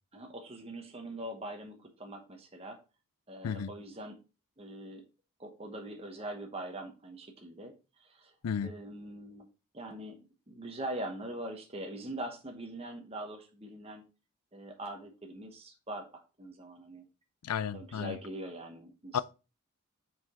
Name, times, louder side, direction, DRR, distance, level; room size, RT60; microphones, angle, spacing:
voice 1, 0.1-2.8 3.3-4.2 4.6-5.0 5.4-8.3 8.6-9.5 9.7-10.2 10.5-14.0 14.5-17.0 17.7-19.2, right 1 dB, 25° right, 1.0 m, -42 dB
voice 2, 17.4-18.2 19.1-19.2, left 7 dB, 90° left, 0.4 m, -33 dB
5.7 x 4.9 x 3.6 m
head